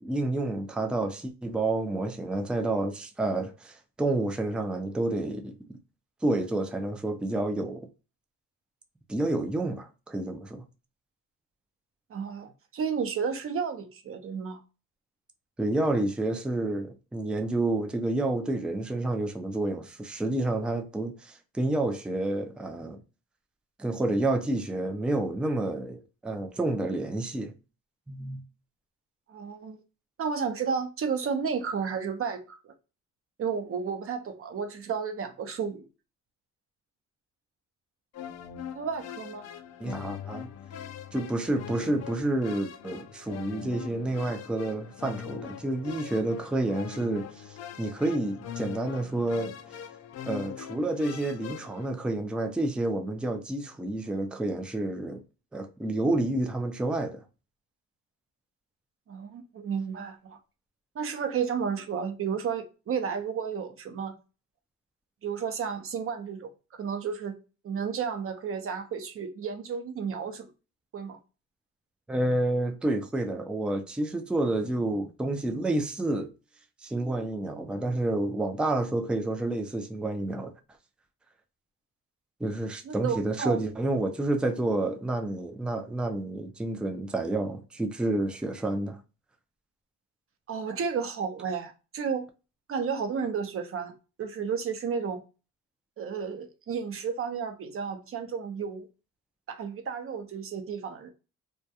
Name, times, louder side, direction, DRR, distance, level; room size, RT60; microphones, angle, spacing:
voice 1, 0.0-5.8 6.2-7.9 9.1-10.6 15.6-23.0 23.8-27.5 28.1-28.4 39.8-40.5 41.1-47.3 47.8-49.6 50.3-55.2 55.5-57.2 72.1-76.3 76.8-80.5 82.4-89.0, right 2 dB, 5° right, 0.3 m, -29 dB
voice 2, 12.1-14.6 29.3-29.8 30.2-32.7 33.4-35.9 38.7-39.4 59.1-60.4 61.0-64.2 65.2-67.4 67.6-70.5 70.9-71.2 82.8-83.6 90.5-92.3 92.7-93.9 94.2-95.2 96.0-98.9 99.5-101.1, right 6 dB, 45° right, 0.6 m, -32 dB
sound 1, 38.1-51.9, left 9 dB, 60° left, 0.4 m, -42 dB
2.3 x 2.2 x 2.7 m
cardioid pair, 90°, 30 cm